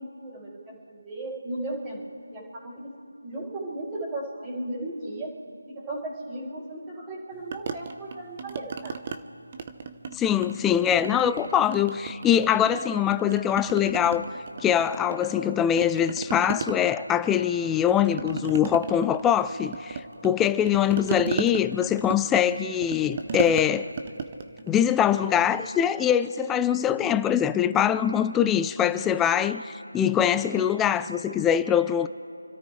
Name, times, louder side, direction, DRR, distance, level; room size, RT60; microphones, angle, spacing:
voice 1, 0.0-2.9 3.2-5.3 5.7-9.0, right 1 dB, 15° right, -7 dB, 3.8 m, -36 dB
sound 1, 7.5-9.2 9.5-10.6 10.9-12.8 13.1-15.5 15.8-25.6, right 5 dB, 30° right, 0.9 m, -35 dB
voice 2, 10.1-14.3 14.6-23.9 24.7-32.1, left 9 dB, 5° left, 13 dB, 0.3 m, -23 dB
28.5 x 13.5 x 3.2 m, 2.8 s
figure-of-eight pair, 165°, 0 cm